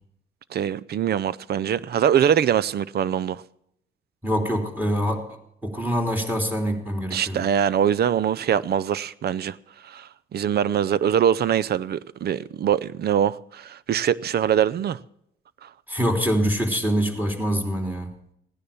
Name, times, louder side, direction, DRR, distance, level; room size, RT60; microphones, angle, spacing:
voice 1, 0.5-3.4 7.1-9.6 9.8-15.0, right 9 dB, 55° right, 0.6 m, -23 dB
voice 2, 4.2-7.4 15.9-18.1, equal, 10° right, 3.2 m, -25 dB
16.0 x 10.0 x 7.1 m
cardioid pair, 90°, 20 cm